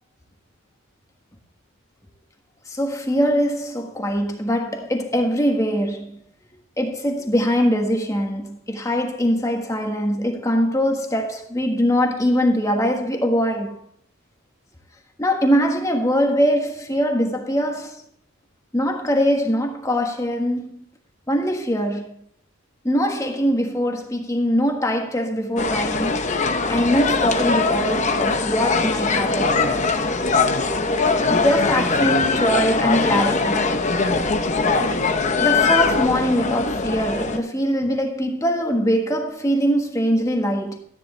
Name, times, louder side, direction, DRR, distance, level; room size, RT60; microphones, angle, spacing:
voice 1, 2.7-6.2 6.8-13.8 15.2-18.0 18.7-20.8 21.3-22.1 22.8-26.2 26.7-29.6 31.3-33.7 35.4-40.8, equal, 15° left, 1.5 m, -22 dB
sound 1, 25.6-37.4, left 4 dB, 35° left, 0.8 m, -21 dB
13.5 x 9.9 x 3.3 m
head